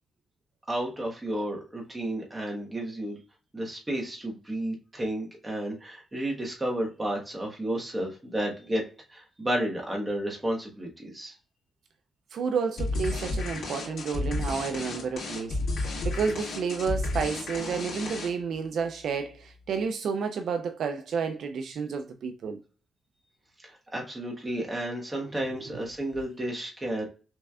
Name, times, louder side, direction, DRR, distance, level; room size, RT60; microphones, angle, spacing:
voice 1, 0.7-3.2 3.5-8.8 9.1-11.3 23.6-27.0, right 1 dB, 15° right, 1.3 m, -32 dB
voice 2, 12.3-22.6 25.6-25.7, right 5 dB, 65° right, 0.5 m, -31 dB
sound 1, 12.8-18.5, left 2 dB, 75° left, 2.2 m, -32 dB
6.0 x 3.3 x 2.4 m
wide cardioid pair, 165°, 0 cm